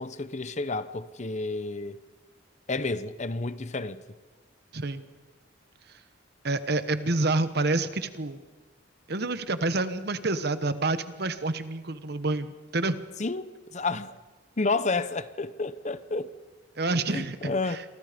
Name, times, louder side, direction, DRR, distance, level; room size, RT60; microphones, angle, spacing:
voice 1, 0.0-2.0 2.7-4.0 13.2-14.2 14.6-16.3 17.1-17.8, left 3 dB, 40° left, 0.9 m, -30 dB
voice 2, 6.4-8.4 9.1-13.0 16.8-17.8, right 2 dB, 55° right, 1.2 m, -28 dB
28.0 x 24.5 x 5.2 m
head